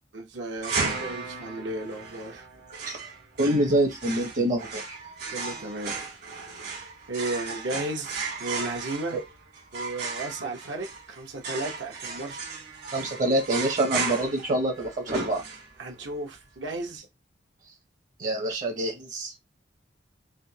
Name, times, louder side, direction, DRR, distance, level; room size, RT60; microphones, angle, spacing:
voice 1, 0.1-0.7 1.0-2.5 5.3-6.1 7.1-9.2 9.7-12.4 15.8-17.1, right 2 dB, 80° right, 1.0 m, -34 dB
sound 1, 0.6-16.0, right 4 dB, 60° right, 1.5 m, -35 dB
voice 2, 3.4-5.0 9.1-9.2 12.9-15.4 18.2-19.3, right 1 dB, 45° right, 0.8 m, -26 dB
3.5 x 2.6 x 2.8 m
head